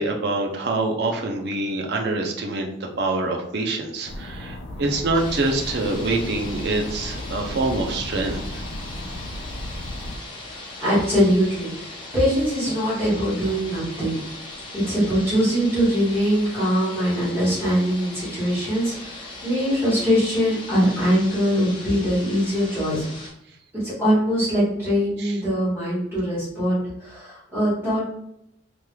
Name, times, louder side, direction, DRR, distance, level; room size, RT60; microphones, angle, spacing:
voice 1, 0.0-8.4 25.2-25.3, right 2 dB, 55° right, 1 dB, 0.5 m, -25 dB
sound 1, 4.1-10.2, left 1 dB, 75° left, 0.6 m, -34 dB
sound 2, 5.1-23.3, left 2 dB, 25° left, 0.6 m, -39 dB
voice 2, 10.5-14.1 14.7-23.1 23.7-28.1, equal, 15° right, -10 dB, 1.5 m, -22 dB
3.4 x 3.1 x 2.2 m, 0.79 s
head